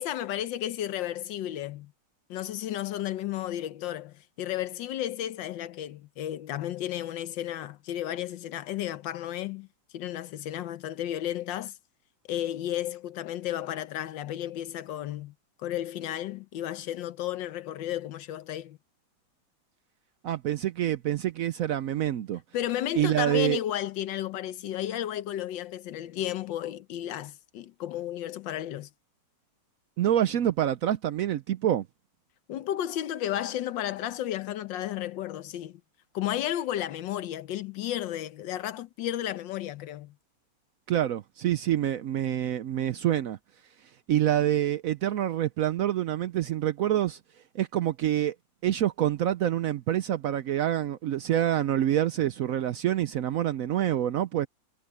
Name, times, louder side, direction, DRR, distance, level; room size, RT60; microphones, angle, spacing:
voice 1, 0.0-1.9 2.3-9.7 9.9-11.7 12.3-15.3 15.6-18.8 22.5-28.9 32.5-35.8 36.1-40.1, left 12 dB, 75° left, 1.5 m, -33 dB
voice 2, 20.2-22.4 23.0-23.6 30.0-31.9 40.9-43.4 44.1-47.2 47.5-48.3 48.6-54.5, right 11 dB, 80° right, 0.7 m, -26 dB
omnidirectional pair, 2.1 m